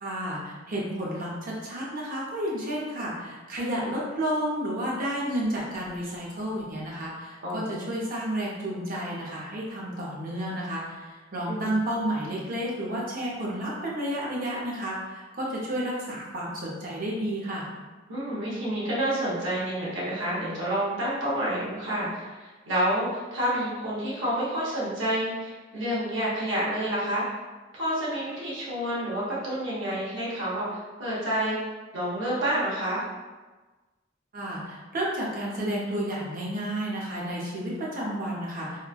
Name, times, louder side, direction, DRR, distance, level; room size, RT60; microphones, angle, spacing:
voice 1, 0.0-17.7 34.3-38.8, right 1 dB, 45° right, -5 dB, 0.7 m, -31 dB
voice 2, 7.4-7.9 11.5-11.7 18.1-27.4 27.7-31.6 31.9-33.0, right 1 dB, 75° right, -7 dB, 0.9 m, -29 dB
3.1 x 2.2 x 2.3 m, 1.3 s
head